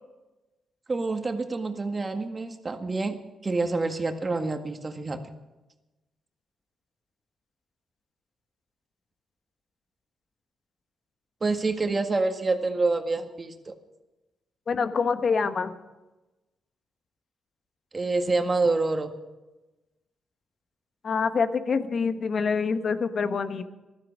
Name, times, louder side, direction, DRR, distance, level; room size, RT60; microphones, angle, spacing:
voice 1, 0.9-3.2 3.4-5.2 11.4-13.7 17.9-19.1, right 3 dB, 30° right, 6 dB, 1.8 m, -27 dB
voice 2, 14.7-15.7 21.0-23.7, left 5 dB, 55° left, 10 dB, 1.2 m, -26 dB
15.0 x 12.5 x 6.3 m, 1.1 s
supercardioid pair, 60°, 0 cm